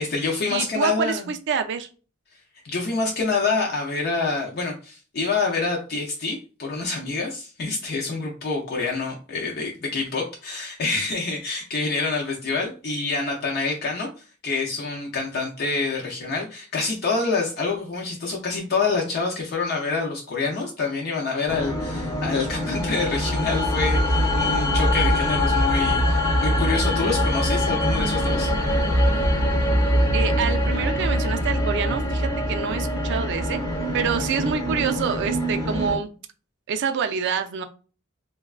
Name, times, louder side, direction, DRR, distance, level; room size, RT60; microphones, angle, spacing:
voice 1, 0.0-1.3 2.6-28.5, left 3 dB, 50° left, -1 dB, 0.5 m, -27 dB
voice 2, 0.5-1.9 30.1-33.6 33.9-36.1 36.7-37.7, right 6 dB, 60° right, 9 dB, 0.4 m, -26 dB
sound 1, 21.5-36.0, left 1 dB, 15° left, 0.7 m, -23 dB
3.3 x 2.2 x 2.3 m, 0.36 s
head